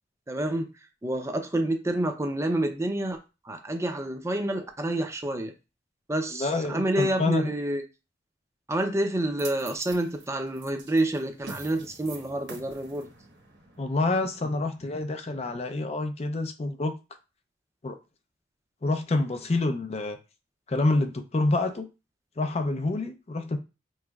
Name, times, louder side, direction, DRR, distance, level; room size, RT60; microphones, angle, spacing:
voice 1, 0.3-0.7 1.0-3.2 3.4-5.5 6.1-7.8 8.7-13.1, right 1 dB, 15° right, 0.5 m, -28 dB
voice 2, 6.3-7.5 13.8-16.9 17.8-18.0 18.8-20.2 20.7-21.9 22.4-23.6, left 2 dB, 35° left, 0.5 m, -27 dB
sound 1, 9.4-15.7, right 4 dB, 65° right, 1.0 m, -46 dB
4.8 x 3.1 x 2.3 m
head